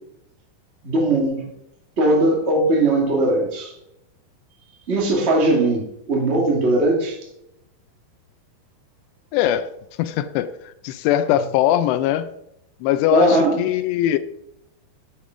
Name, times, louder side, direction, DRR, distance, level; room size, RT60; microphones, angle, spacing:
voice 1, 0.8-1.4 2.0-3.7 4.9-7.2 13.1-13.6, right 2 dB, 40° right, -1 dB, 0.9 m, -19 dB
voice 2, 9.3-9.7 10.0-12.3 12.8-14.2, left 12 dB, 85° left, 12 dB, 2.7 m, -21 dB
9.5 x 7.0 x 5.0 m, 0.81 s
omnidirectional pair, 4.9 m